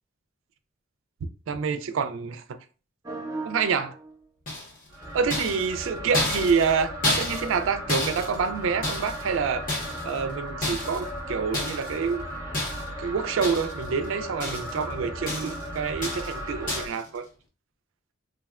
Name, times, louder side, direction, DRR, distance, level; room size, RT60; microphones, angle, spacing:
voice 1, 1.5-2.4 3.4-4.0 5.1-9.7 10.0-12.3 13.0-17.3, right 5 dB, 70° right, 0.4 m, -27 dB
sound 1, 3.0-4.1 4.9-16.9, equal, 15° right, 0.5 m, -36 dB
sound 2, 4.5-4.9 5.3-7.6 7.9-9.3 9.7-10.2 10.6-11.1 11.5-12.0 12.5-13.0 13.4-13.9 14.1-14.8 15.3-15.7 16.0-16.4 16.7-17.0, left 1 dB, 40° left, 0.8 m, -31 dB
3.4 x 2.1 x 2.3 m
head